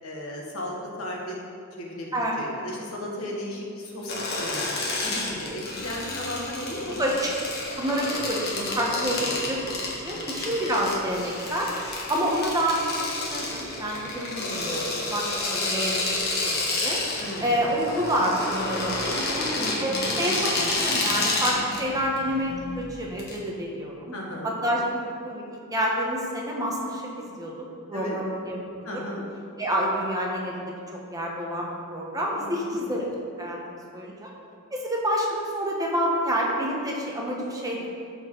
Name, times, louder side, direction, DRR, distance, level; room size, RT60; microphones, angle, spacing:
voice 1, 0.0-1.4 1.7-4.7 5.0-7.0 8.6-8.9 9.2-9.4 10.1-10.6 17.2-17.6 19.1-20.6 24.1-24.6 27.9-28.2 28.8-29.2 32.3-32.8, left 1 dB, 90° left, -3 dB, 1.6 m, -36 dB
sound 1, 4.1-23.4, left 2 dB, 50° left, 1.5 m, -30 dB
voice 2, 7.0-7.3 7.8-9.6 10.0-11.7 12.1-16.2 16.5-17.0 17.4-19.4 19.8-24.1 24.4-27.5 27.9-28.6 28.9-29.0 29.6-30.7 31.1-33.1 33.4-34.3 34.7-37.9, equal, 15° right, -2 dB, 1.1 m, -28 dB
13.5 x 4.5 x 3.9 m, 2.5 s
head